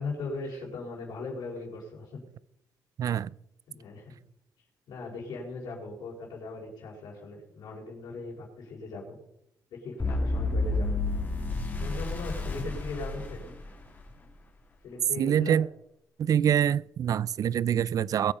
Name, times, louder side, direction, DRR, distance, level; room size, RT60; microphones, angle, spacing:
voice 1, 0.0-2.2 3.7-4.1 4.9-9.2 9.7-10.9 11.8-13.4 14.8-15.6, left 3 dB, 75° left, 5.0 m, -39 dB
voice 2, 3.0-3.3 15.2-15.7 16.2-18.3, right 9 dB, 60° right, 0.4 m, -25 dB
sound 1, 10.0-14.1, left 2 dB, 25° left, 3.7 m, -30 dB
21.5 x 8.5 x 5.4 m
cardioid pair, 90°, 7 cm